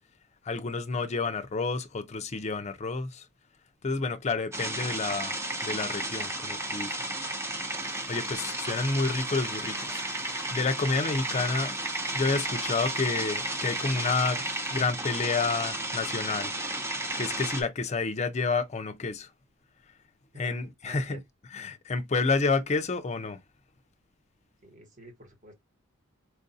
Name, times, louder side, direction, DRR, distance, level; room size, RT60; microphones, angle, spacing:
voice 1, 0.4-3.3 3.8-7.1 8.1-10.0 10.5-11.7 12.1-16.5 17.2-19.3 20.4-21.2 21.5-23.4, left 4 dB, 30° left, 0.4 m, -29 dB
sound 1, 4.5-17.6, right 1 dB, 15° right, 0.7 m, -33 dB
voice 2, 20.3-21.2 21.6-21.8 24.6-25.5, right 1 dB, 35° right, 1.3 m, -49 dB
4.5 x 2.5 x 2.6 m
head